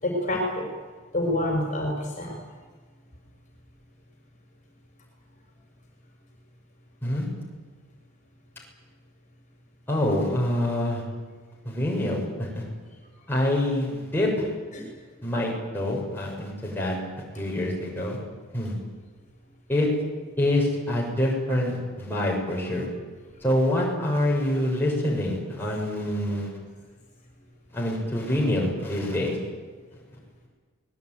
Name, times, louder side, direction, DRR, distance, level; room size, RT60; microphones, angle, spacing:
voice 1, 0.0-0.7 1.1-2.4 14.7-14.9, left 1 dB, 35° left, 1 dB, 5.5 m, -27 dB
voice 2, 9.9-11.0 11.6-12.6 13.3-14.5 15.2-16.9 17.3-18.2 18.5-18.7 19.7-19.9 20.4-22.9 23.4-26.5 27.7-29.4, left 1 dB, 10° left, -3 dB, 6.6 m, -26 dB
23.5 x 20.5 x 9.4 m, 1.5 s
head